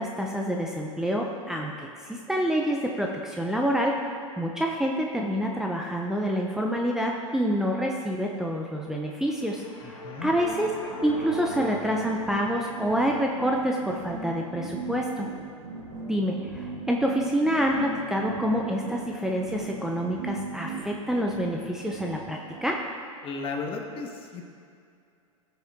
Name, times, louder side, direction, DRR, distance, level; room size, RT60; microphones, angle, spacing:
voice 1, 0.0-1.7 2.0-10.7 11.0-15.3 16.1-22.8, equal, 5° right, -1 dB, 0.8 m, -27 dB
sound 1, 8.9-13.2, left 1 dB, 80° left, 2.1 m, -40 dB
voice 2, 9.8-10.3 23.2-24.4, left 4 dB, 30° left, 3 dB, 1.5 m, -35 dB
sound 2, 10.1-22.7, right 3 dB, 70° right, 2.2 m, -39 dB
16.0 x 6.9 x 3.7 m, 2.4 s
hypercardioid pair, 100°, 17 cm